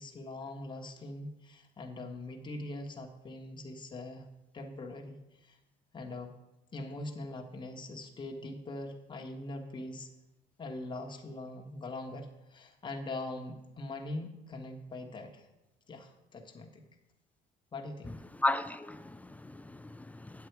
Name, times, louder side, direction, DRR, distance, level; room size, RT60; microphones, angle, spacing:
voice 1, 0.0-4.3 4.5-5.6 5.9-6.4 6.7-10.1 10.6-15.5 15.9-16.8 17.7-18.2, left 2 dB, 30° left, 1.4 m, -42 dB
voice 2, 18.4-20.5, left 2 dB, 10° left, 0.4 m, -35 dB
9.4 x 7.9 x 4.7 m
cardioid pair, 110°, 17 cm